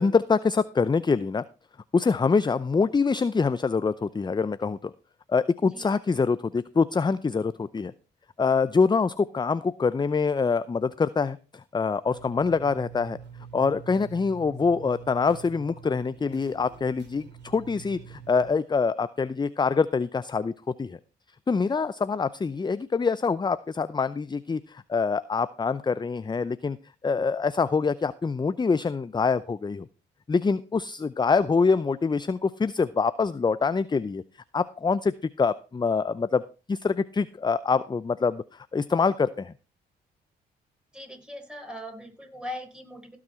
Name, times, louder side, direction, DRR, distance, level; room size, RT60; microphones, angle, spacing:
voice 1, 0.0-1.4 1.9-4.9 5.3-7.9 8.4-13.2 13.5-21.0 21.5-26.8 27.0-29.9 30.3-34.2 34.5-36.4 36.7-39.5, left 4 dB, 20° left, 15 dB, 0.5 m, -25 dB
sound 1, 12.0-18.5, right 7 dB, 55° right, 3.1 m, -46 dB
voice 2, 40.9-43.2, left 1 dB, 5° right, 4 dB, 4.5 m, -40 dB
16.5 x 6.3 x 4.3 m, 0.34 s
hypercardioid pair, 50°, 21 cm